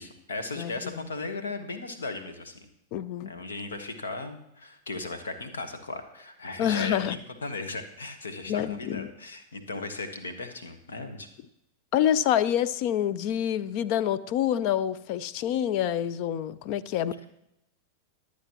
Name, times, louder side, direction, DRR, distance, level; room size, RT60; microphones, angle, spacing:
voice 1, 0.0-2.7 3.2-11.3, left 3 dB, 70° left, 8 dB, 1.3 m, -37 dB
voice 2, 0.6-1.1 2.9-3.3 6.6-7.2 8.5-9.1 11.9-17.1, left 10 dB, 45° left, 18 dB, 0.5 m, -27 dB
22.5 x 8.3 x 3.0 m, 0.83 s
figure-of-eight pair, 90°, 0 cm